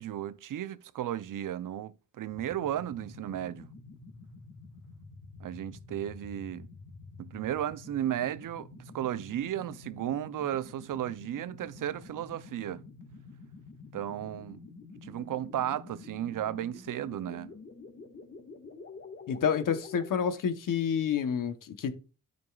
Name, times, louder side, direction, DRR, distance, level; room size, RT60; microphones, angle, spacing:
voice 1, 0.0-3.7 5.4-6.7 7.2-12.8 13.9-14.6 15.0-17.5, right 11 dB, 85° right, 0.5 m, -34 dB
sound 1, 2.3-20.1, left 4 dB, 35° left, 1.5 m, -49 dB
voice 2, 19.3-21.9, left 7 dB, 85° left, 0.9 m, -29 dB
12.5 x 5.2 x 2.3 m
wide cardioid pair, 110°, 31 cm